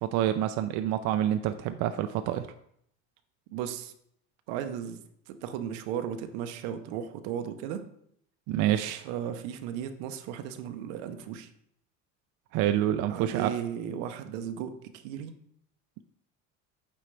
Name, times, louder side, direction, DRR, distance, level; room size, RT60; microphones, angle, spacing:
voice 1, 0.0-2.5 8.5-9.0 12.5-13.5, right 12 dB, 65° right, 8 dB, 0.5 m, -27 dB
voice 2, 3.5-3.9 4.5-7.8 9.0-11.5 13.1-15.3, right 9 dB, 85° right, 8 dB, 0.8 m, -35 dB
8.8 x 4.3 x 3.3 m, 0.70 s
cardioid pair, 125°, 33 cm